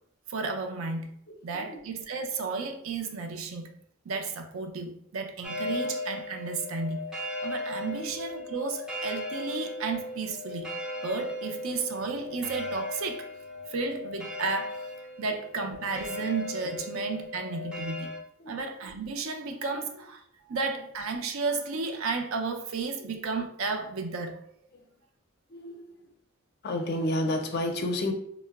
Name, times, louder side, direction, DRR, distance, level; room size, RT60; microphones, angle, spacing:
voice 1, 0.3-1.2 1.4-3.7 4.1-7.0 7.4-10.7 11.0-13.3 13.7-14.9 15.2-18.1 18.5-24.4, right 4 dB, 75° right, 0.5 m, -33 dB
voice 2, 1.3-1.8 8.0-8.1 18.4-18.6 19.7-19.8 24.7-24.9 25.5-26.1 26.6-28.1, left 1 dB, 50° left, 0.4 m, -31 dB
sound 1, 5.4-18.2, left 2 dB, 5° right, 0.5 m, -37 dB
4.3 x 2.0 x 2.3 m
head